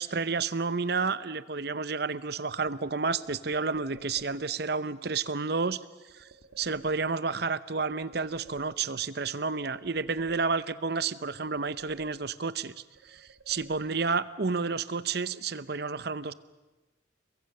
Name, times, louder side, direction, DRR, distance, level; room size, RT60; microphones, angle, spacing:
voice 1, 0.0-5.8 6.1-6.3 6.6-12.7 13.0-16.3, right 4 dB, 55° right, 15 dB, 0.8 m, -30 dB
sound 1, 2.7-4.6 6.1-7.5 7.8-9.2 9.5-10.9 11.2-12.6 12.9-14.3, right 4 dB, 85° right, 1.7 m, -56 dB
29.5 x 22.5 x 6.7 m, 1.2 s
head